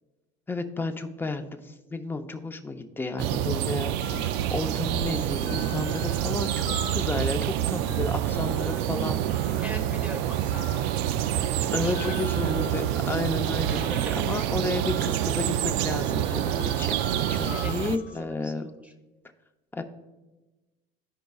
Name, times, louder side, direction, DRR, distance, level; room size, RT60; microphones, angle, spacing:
voice 1, 0.5-6.7 6.9-9.6 11.7-13.9 14.2-17.0 17.3-18.7 19.7-19.8, left 3 dB, 10° left, 6 dB, 0.6 m, -32 dB
sound 1, 3.2-18.0, right 11 dB, 75° right, 0.4 m, -27 dB
sound 2, 3.7-18.2, left 6 dB, 50° left, 0.7 m, -46 dB
voice 2, 9.4-11.1 11.5-12.6 13.7-14.5 17.5-18.9, equal, 10° right, 6 dB, 1.0 m, -42 dB
14.5 x 5.2 x 2.3 m, 1.1 s
cardioid pair, 120°, 18 cm